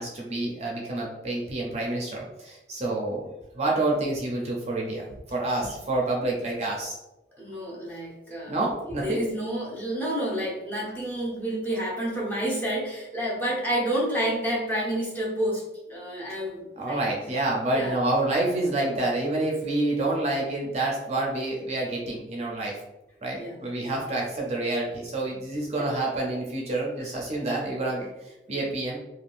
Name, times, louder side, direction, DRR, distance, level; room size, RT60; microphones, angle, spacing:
voice 1, 0.0-3.2 3.5-7.0 8.5-9.3 16.8-22.8 23.2-29.0, right 2 dB, 35° right, -2 dB, 0.5 m, -28 dB
voice 2, 7.4-8.5 9.0-15.6 15.9-17.0 17.7-18.0 23.4-23.9 25.8-25.9, right 1 dB, 10° left, -5 dB, 0.8 m, -29 dB
3.4 x 2.3 x 2.5 m, 0.97 s
head